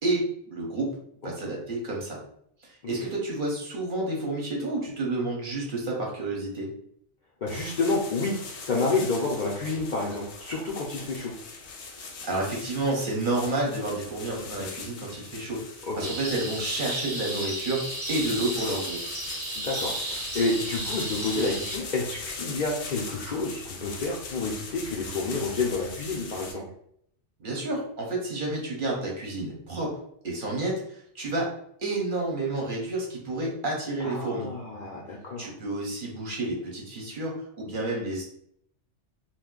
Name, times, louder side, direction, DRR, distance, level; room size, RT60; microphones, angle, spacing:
voice 1, 0.0-1.0 1.2-2.2 2.9-6.7 12.2-15.6 16.0-17.8 18.1-19.0 27.4-29.9 30.2-31.5 31.8-34.5 35.4-38.2, right 2 dB, 50° right, -2 dB, 0.9 m, -30 dB
voice 2, 1.2-1.5 2.8-2.9 7.4-11.3 15.8-16.1 19.6-26.6 34.0-35.5, left 3 dB, 55° left, -3 dB, 0.5 m, -29 dB
sound 1, 7.5-26.5, left 4 dB, 70° left, 0.9 m, -41 dB
sound 2, 16.0-21.8, right 1 dB, 25° right, 0.6 m, -34 dB
2.5 x 2.2 x 3.7 m, 0.69 s
omnidirectional pair, 1.2 m